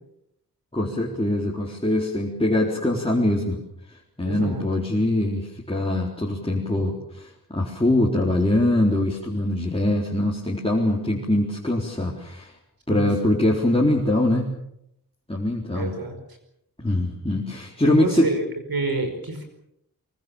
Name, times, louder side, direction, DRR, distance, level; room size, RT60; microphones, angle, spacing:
voice 1, 0.7-3.6 4.2-12.5 12.9-14.5 15.3-15.9 16.8-18.3, left 1 dB, 15° left, -3 dB, 3.9 m, -23 dB
voice 2, 4.3-4.6 12.9-13.1 15.7-16.1 17.8-19.5, right 2 dB, 75° right, 6 dB, 5.1 m, -28 dB
23.5 x 23.5 x 7.1 m, 0.77 s
wide cardioid pair, 90°, 36 cm